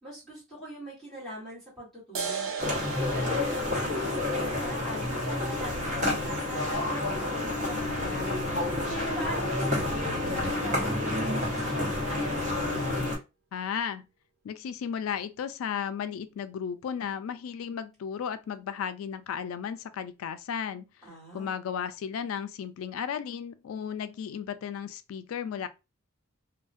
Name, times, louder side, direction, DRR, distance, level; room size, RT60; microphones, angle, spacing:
voice 1, 0.0-2.5 3.1-8.3 8.9-12.4 21.0-21.6, equal, ahead, 1.2 m, -42 dB
sound 1, 2.2-9.1, right 5 dB, 75° right, 0.5 m, -41 dB
sound 2, 2.6-13.2, left 2 dB, 40° right, 0.9 m, -29 dB
voice 2, 13.5-14.1 14.4-20.9 21.3-25.7, left 7 dB, 90° left, 0.3 m, -34 dB
2.3 x 2.1 x 2.5 m
head